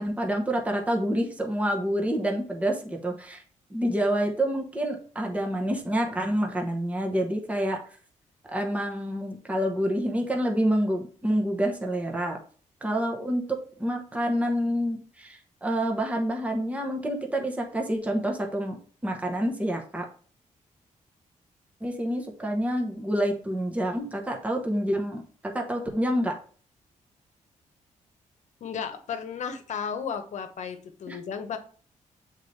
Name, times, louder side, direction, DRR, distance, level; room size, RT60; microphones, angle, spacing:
voice 1, 0.0-3.4 3.7-7.8 8.5-12.4 12.8-20.1 21.8-26.3 31.1-31.2, equal, 10° right, 2 dB, 1.0 m, -28 dB
voice 2, 28.6-31.6, left 7 dB, 60° left, 8 dB, 1.0 m, -34 dB
8.1 x 4.0 x 3.3 m, 0.43 s
wide cardioid pair, 150°, 13 cm